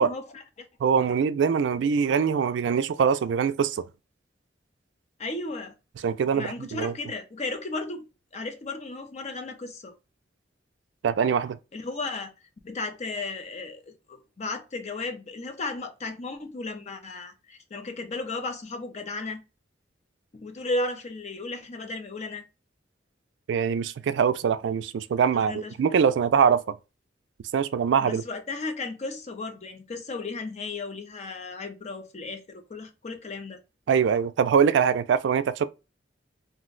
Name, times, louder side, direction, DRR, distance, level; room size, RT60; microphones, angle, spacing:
voice 1, 0.0-0.7 5.2-5.7 6.3-8.0 8.3-9.9 11.7-12.3 12.6-19.4 20.3-22.4 25.3-25.7 28.0-33.6, left 3 dB, 40° left, 0.5 m, -35 dB
voice 2, 0.8-3.8 6.0-6.9 11.0-11.6 23.5-26.8 27.5-28.2 33.9-35.7, right 7 dB, 75° right, 0.3 m, -23 dB
2.5 x 2.1 x 3.7 m
head